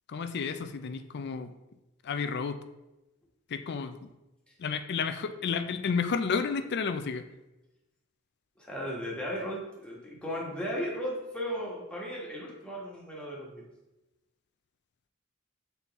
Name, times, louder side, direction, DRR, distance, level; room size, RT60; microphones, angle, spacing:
voice 1, 0.1-1.5 2.0-2.6 3.5-4.0 4.6-7.2, left 5 dB, 50° left, 9 dB, 0.4 m, -31 dB
voice 2, 8.6-13.6, equal, 5° left, -4 dB, 1.5 m, -36 dB
7.0 x 4.2 x 3.5 m, 0.99 s
head